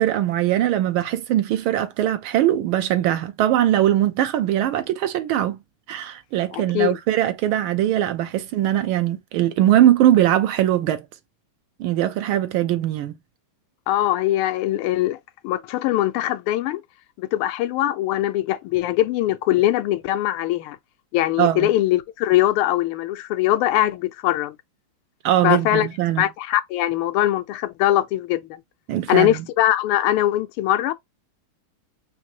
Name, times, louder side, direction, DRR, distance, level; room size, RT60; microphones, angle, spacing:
voice 1, 0.0-5.6 5.9-11.1 11.8-13.1 21.4-21.7 25.2-26.2 28.9-29.4, right 12 dB, 80° right, 1.4 m, -21 dB
voice 2, 6.5-6.9 13.9-15.2 15.4-16.8 17.2-20.8 21.1-24.6 25.4-25.9 26.2-28.6 29.1-30.9, left 14 dB, 85° left, 1.5 m, -21 dB
4.6 x 2.6 x 2.7 m
omnidirectional pair, 2.3 m